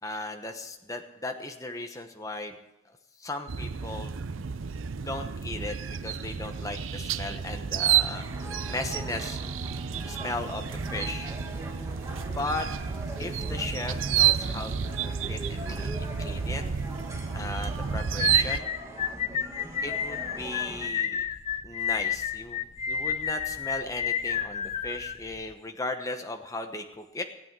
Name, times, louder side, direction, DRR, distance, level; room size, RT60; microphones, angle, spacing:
voice 1, 0.0-2.6 2.9-4.1 5.0-8.2 8.7-9.4 10.1-11.3 12.3-12.7 13.2-14.7 15.0-16.6 17.3-18.7 19.8-21.3 21.6-27.2, left 2 dB, 15° left, 5 dB, 1.0 m, -36 dB
sound 1, 3.5-18.6, right 8 dB, 85° right, 0.6 m, -30 dB
sound 2, 8.1-20.9, right 1 dB, 15° right, 1.6 m, -41 dB
sound 3, 18.2-25.5, left 8 dB, 35° left, 0.5 m, -31 dB
17.5 x 8.5 x 7.4 m, 0.96 s
head